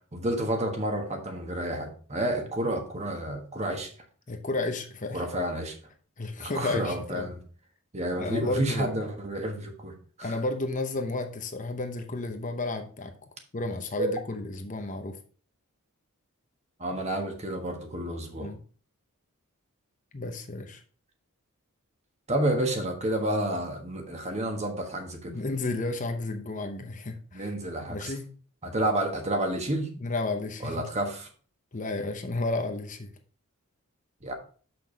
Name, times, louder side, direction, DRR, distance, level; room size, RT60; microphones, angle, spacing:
voice 1, 0.1-3.9 5.1-5.7 6.4-7.4 7.9-10.3 14.0-14.1 16.8-18.5 22.3-25.3 27.3-28.1 28.6-29.9 30.6-31.3 34.2-34.3, right 1 dB, 30° right, 3 dB, 1.4 m, -30 dB
voice 2, 4.3-5.2 6.2-7.3 8.2-8.9 10.2-13.1 13.5-15.2 18.4-18.6 20.1-20.8 25.3-27.5 27.9-28.3 30.0-30.9 31.7-33.1, left 2 dB, 35° left, 5 dB, 0.8 m, -32 dB
6.8 x 6.0 x 4.0 m, 0.42 s
head